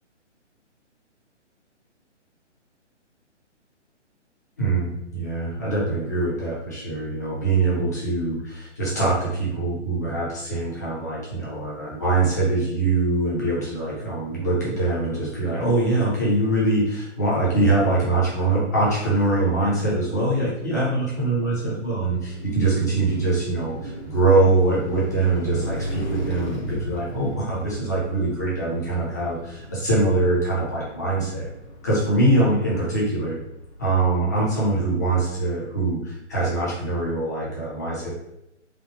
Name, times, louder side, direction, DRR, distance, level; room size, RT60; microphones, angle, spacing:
voice 1, 4.6-31.5 31.8-33.4 33.8-38.1, right 2 dB, 15° left, -7 dB, 0.4 m, -23 dB
Car passing by, 22.0-34.2, equal, 70° left, 1.0 m, -36 dB
3.1 x 2.1 x 3.1 m, 0.86 s
figure-of-eight pair, 135°, 36 cm